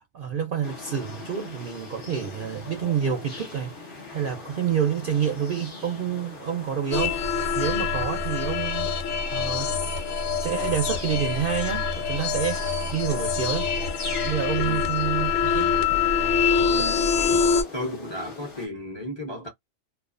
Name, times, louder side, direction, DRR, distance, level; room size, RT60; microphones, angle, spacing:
voice 1, 0.1-8.9 9.3-9.7 10.4-13.7 14.2-15.8, right 8 dB, 60° right, 0.5 m, -28 dB
sound 1, 0.6-18.7, left 3 dB, 45° left, 1.0 m, -41 dB
sound 2, 6.9-17.6, left 6 dB, 75° left, 0.9 m, -25 dB
voice 2, 16.6-19.5, left 1 dB, 30° left, 0.5 m, -35 dB
2.4 x 2.4 x 2.4 m
omnidirectional pair, 1.4 m